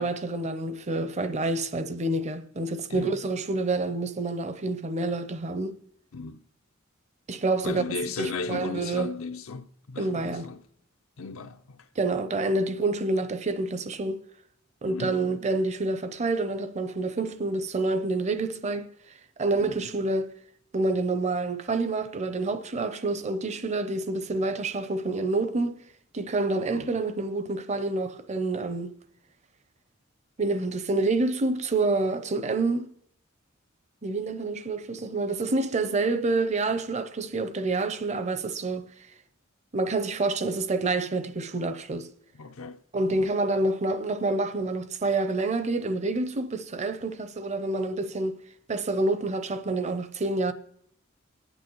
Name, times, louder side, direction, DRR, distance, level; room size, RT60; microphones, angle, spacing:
voice 1, 0.0-5.8 7.3-7.8 8.2-9.1 10.0-10.5 12.0-14.2 14.8-18.9 19.4-20.3 20.7-25.8 26.1-29.0 30.4-32.9 34.0-38.9 39.7-42.1 42.9-48.4 48.7-50.5, right 2 dB, 35° right, 0.6 m, -28 dB
voice 2, 7.6-10.6 11.2-11.9 14.8-15.2 19.6-19.9 26.7-27.1 42.4-42.8 43.1-43.3, left 4 dB, 85° left, 0.6 m, -36 dB
24.5 x 9.0 x 3.1 m
head